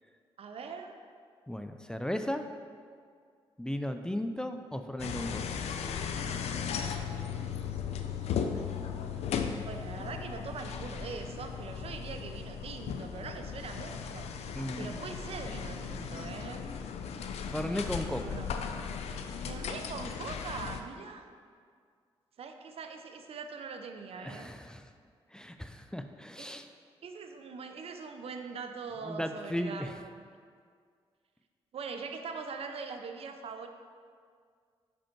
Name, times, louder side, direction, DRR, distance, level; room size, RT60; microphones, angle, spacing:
voice 1, 0.4-1.0 9.7-16.6 18.2-18.5 19.4-21.2 22.4-24.5 26.4-26.7 27.0-30.2 31.7-33.7, right 5 dB, 70° right, 6 dB, 0.6 m, -42 dB
voice 2, 1.5-2.5 3.6-5.4 14.5-15.0 17.5-18.4 24.2-24.9 25.3-26.7 29.0-30.0, equal, 5° left, 7 dB, 0.4 m, -35 dB
sound 1, 5.0-20.8, left 7 dB, 85° left, 0.4 m, -37 dB
5.7 x 5.2 x 4.4 m, 2.1 s
cardioid pair, 65°, 11 cm